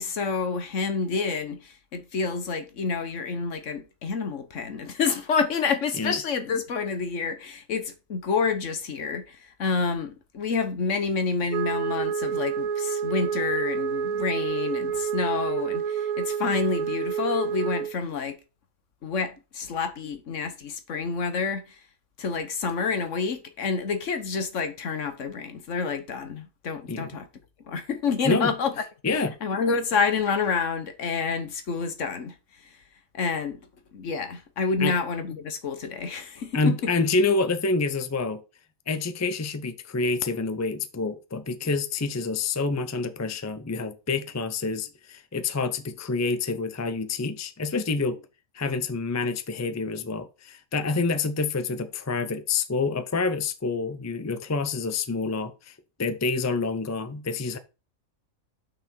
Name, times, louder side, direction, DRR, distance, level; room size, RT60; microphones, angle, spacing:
voice 1, 0.0-18.4 19.0-21.8 22.2-27.3 27.6-28.8 29.1-32.8 33.1-33.6 33.9-36.9, left 5 dB, 65° left, 1.4 m, -28 dB
Wind instrument woodwind instrument, 11.5-17.9, right 7 dB, 75° right, 1.7 m, -28 dB
voice 2, 29.0-29.3 34.8-34.9 36.5-38.4 38.9-48.2 48.5-57.6, left 3 dB, 20° left, 0.4 m, -27 dB
6.4 x 6.0 x 4.4 m
omnidirectional pair, 1.4 m